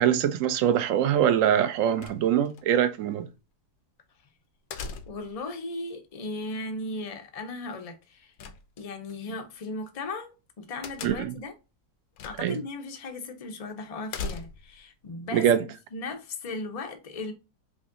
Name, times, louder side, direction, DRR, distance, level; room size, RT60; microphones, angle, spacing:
voice 1, 0.0-3.3 11.0-11.3 12.4-12.6 15.3-15.6, right 9 dB, 70° right, 0.8 m, -23 dB
sound 1, 2.0-2.6 4.7-5.4 8.4-9.1 10.8-11.5 12.2-12.6 13.0-13.1 14.1-14.8, left 4 dB, 70° left, 1.0 m, -38 dB
voice 2, 5.1-8.3 8.8-10.3 10.6-11.5 12.2-15.5 15.9-17.3, left 2 dB, 50° left, 0.4 m, -36 dB
5.0 x 2.6 x 2.4 m
omnidirectional pair, 1.7 m